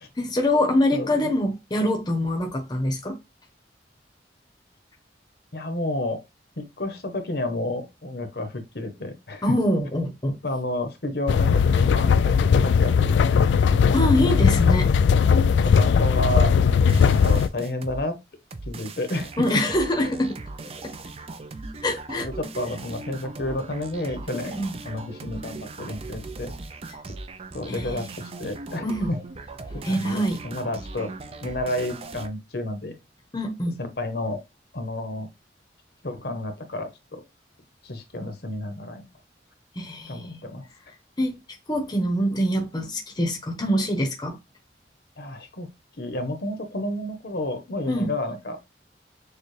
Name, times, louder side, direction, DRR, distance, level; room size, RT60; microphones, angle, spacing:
voice 1, 0.2-3.2 9.4-10.4 13.9-14.9 19.4-20.4 20.8-20.9 21.8-22.3 24.5-24.7 27.7-28.0 28.8-29.1 29.8-30.4 33.3-33.8 39.8-40.4 41.2-41.4 41.7-44.4 47.9-48.1, equal, 25° left, 0.8 m, -24 dB
voice 2, 0.9-1.3 5.5-6.2 6.6-9.4 10.3-14.0 15.5-16.5 17.0-18.2 18.7-19.3 20.0-20.2 22.2-24.6 24.8-26.5 27.5-29.2 29.9-31.1 31.4-33.0 33.8-34.4 34.7-35.3 36.0-37.2 37.8-39.1 40.1-40.6 45.2-45.7 46.0-48.7, left 1 dB, 60° left, 0.9 m, -31 dB
sound 1, 11.3-17.5, left 6 dB, 85° left, 0.3 m, -18 dB
sound 2, 16.9-18.0 18.5-32.3, right 3 dB, 35° right, 0.5 m, -39 dB
6.6 x 2.3 x 3.2 m
head